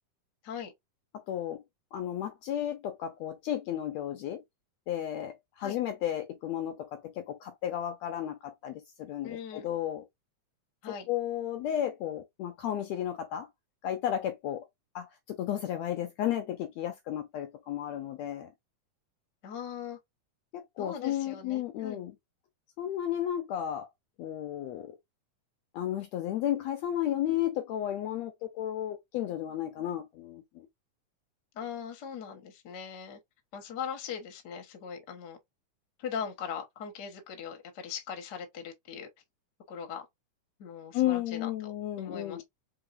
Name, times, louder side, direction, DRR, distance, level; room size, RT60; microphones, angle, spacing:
voice 1, 1.1-1.6 1.9-4.4 4.9-10.0 11.1-13.5 13.8-14.6 14.9-18.5 20.5-22.1 22.8-23.9 24.2-25.0 25.7-30.7 40.9-42.4, left 11 dB, 75° left, 1.6 m, -33 dB
voice 2, 9.2-9.7 10.8-11.1 19.4-20.0 20.8-22.0 31.5-33.2 33.5-35.4 36.0-39.1 39.7-40.1 40.6-42.4, left 7 dB, 55° left, 1.2 m, -40 dB
4.6 x 3.8 x 2.5 m
omnidirectional pair, 3.6 m